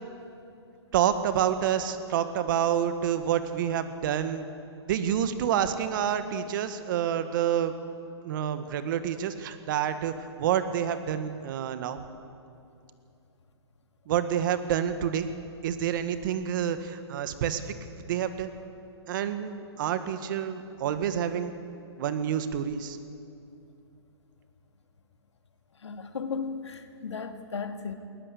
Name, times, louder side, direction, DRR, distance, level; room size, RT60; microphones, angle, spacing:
voice 1, 0.9-4.4 4.9-7.7 8.2-12.0 14.1-15.3 15.6-17.8 18.1-18.5 19.1-21.6 22.0-23.0, right 9 dB, 45° right, 10 dB, 1.7 m, -28 dB
voice 2, 25.8-27.9, left 5 dB, 90° left, 7 dB, 2.0 m, -35 dB
20.5 x 19.0 x 8.4 m, 2.6 s
hypercardioid pair, 145°, 14 cm